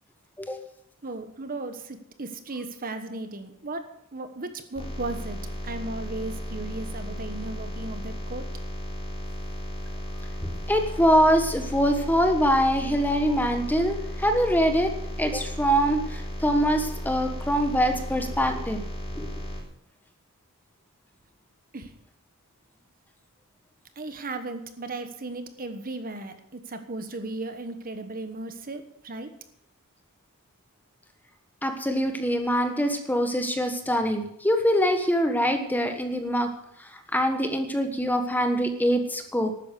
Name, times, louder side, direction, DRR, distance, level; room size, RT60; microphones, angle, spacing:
voice 1, 1.0-8.5 21.7-21.9 24.0-29.4, right 2 dB, 40° right, 8 dB, 1.2 m, -36 dB
sound 1, 4.7-19.6, equal, 25° left, 3.5 m, -35 dB
voice 2, 10.4-14.9 15.2-18.8 19.1-19.3 31.6-36.5 36.9-39.5, equal, 10° left, 6 dB, 1.3 m, -24 dB
12.5 x 9.7 x 6.8 m, 0.74 s
head